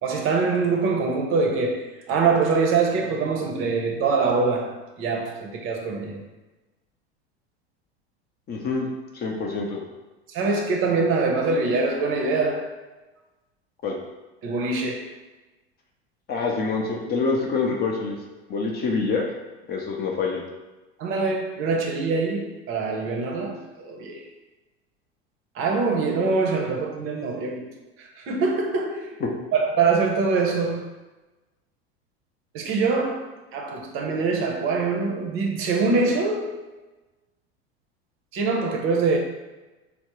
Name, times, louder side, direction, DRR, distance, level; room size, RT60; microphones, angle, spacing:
voice 1, 0.0-6.2 10.3-12.7 14.4-15.1 21.0-24.2 25.6-27.7 28.2-29.2 29.5-30.9 32.5-36.7 38.3-39.2, right 4 dB, 40° right, 0.6 m, -24 dB
voice 2, 8.5-8.9 9.1-9.8 13.8-14.0 16.3-19.2 19.7-20.4 29.2-29.3, left 4 dB, 30° left, 0.5 m, -26 dB
3.4 x 2.0 x 2.9 m
hypercardioid pair, 90°, 32 cm